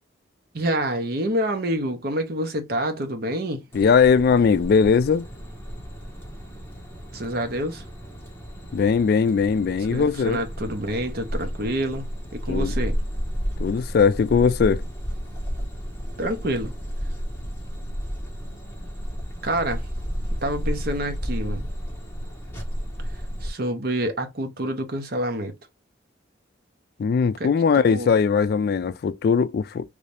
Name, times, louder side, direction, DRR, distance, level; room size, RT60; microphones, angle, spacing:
voice 1, 0.5-3.6 7.1-7.8 9.9-12.1 12.4-13.0 16.2-16.7 19.4-19.8 20.4-21.7 23.4-25.5 27.4-28.1, right 1 dB, 55° right, 0.8 m, -27 dB
voice 2, 3.7-5.2 8.7-10.4 12.5-12.7 13.6-14.8 27.0-29.9, left 5 dB, 55° left, 0.3 m, -20 dB
sound 1, 3.7-23.5, equal, 10° left, 1.3 m, -32 dB
3.2 x 2.7 x 3.2 m
head